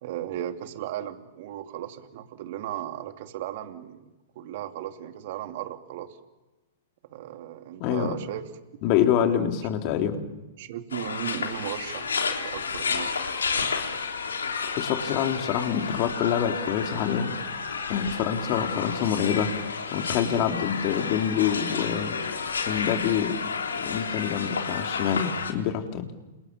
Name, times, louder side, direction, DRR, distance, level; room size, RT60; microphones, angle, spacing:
voice 1, 0.0-6.2 7.1-8.5 10.6-13.7, right 11 dB, 55° right, 6 dB, 2.8 m, -36 dB
voice 2, 7.8-8.2 8.8-10.2 14.8-17.4 17.9-19.5 19.9-22.2 22.7-23.4 23.8-26.1, left 9 dB, 40° left, 4 dB, 3.7 m, -26 dB
sound 1, 10.9-25.5, left 5 dB, 80° left, 3.6 m, -31 dB
30.0 x 27.5 x 7.1 m, 1.1 s
hypercardioid pair, 115°, 0 cm